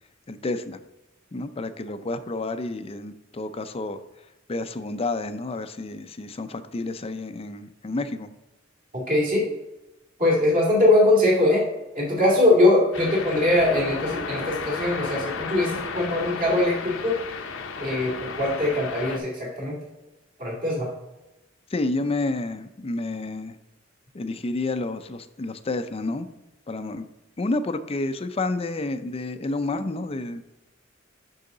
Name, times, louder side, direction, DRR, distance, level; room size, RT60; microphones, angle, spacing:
voice 1, 0.3-0.8 1.3-4.0 4.5-8.3 21.7-23.5 24.1-26.3 26.7-27.1 27.4-30.4, left 2 dB, 30° left, 10 dB, 0.5 m, -30 dB
voice 2, 8.9-9.5 10.2-11.6 11.9-17.2 17.8-19.8 20.4-20.9, left 1 dB, 45° right, -3 dB, 2.3 m, -21 dB
sound 1, 12.9-19.2, left 4 dB, 75° left, 0.8 m, -33 dB
6.7 x 6.3 x 3.8 m, 0.98 s
head